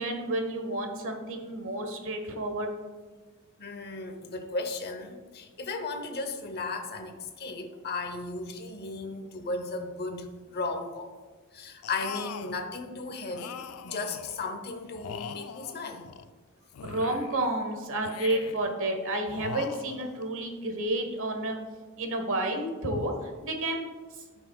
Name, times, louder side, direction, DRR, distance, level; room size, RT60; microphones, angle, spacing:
voice 1, 0.0-2.7 16.8-21.6 22.0-23.1 23.4-23.9, right 1 dB, 65° right, 4 dB, 1.3 m, -30 dB
voice 2, 3.6-11.1 11.5-16.1 22.9-23.1, left 3 dB, 50° left, 7 dB, 0.9 m, -35 dB
sound 1, 11.8-12.6 13.3-14.4 14.9-16.3 16.7-17.5 18.0-18.7 19.3-20.3, left 7 dB, 80° left, 0.4 m, -41 dB
16.5 x 5.8 x 2.4 m, 1.4 s
head